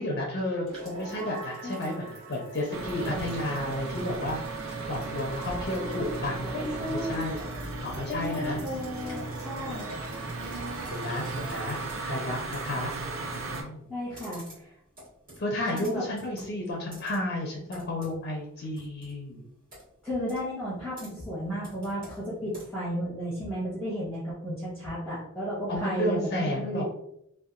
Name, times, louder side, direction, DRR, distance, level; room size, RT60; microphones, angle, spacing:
voice 1, 0.0-4.6 4.9-8.6 10.9-12.9 13.3-13.9 15.4-19.5 25.7-26.8, left 1 dB, 50° left, -2 dB, 0.4 m, -32 dB
sound 1, 0.6-12.5, equal, 25° right, 1.2 m, -44 dB
sound 2, 2.7-13.6, right 3 dB, 70° right, 0.5 m, -36 dB
voice 2, 6.5-7.3 8.1-9.9 13.9-14.7 15.6-16.0 20.0-26.8, equal, ahead, -8 dB, 0.6 m, -33 dB
Computer keyboard, 10.6-22.9, right 1 dB, 40° right, 1.3 m, -51 dB
2.7 x 2.2 x 2.4 m, 0.75 s
head